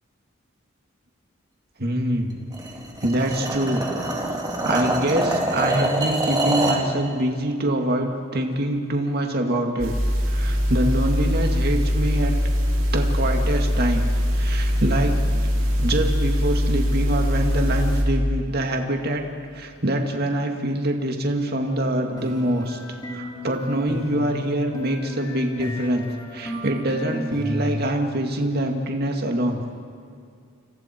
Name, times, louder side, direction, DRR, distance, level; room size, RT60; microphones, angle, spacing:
voice 1, 1.8-2.4 3.0-3.8 4.6-10.0 10.3-12.4 12.9-14.1 14.3-15.2 15.8-19.2 19.5-22.8 23.1-26.1 26.3-29.6, right 1 dB, 50° right, 3 dB, 2.3 m, -24 dB
sound 1, 2.5-6.9, right 1 dB, 20° right, 3.0 m, -25 dB
sound 2, 9.8-18.0, equal, 85° right, 4.9 m, -22 dB
sound 3, 21.4-27.9, equal, 20° left, 5.1 m, -33 dB
28.5 x 27.0 x 4.6 m, 2.4 s
head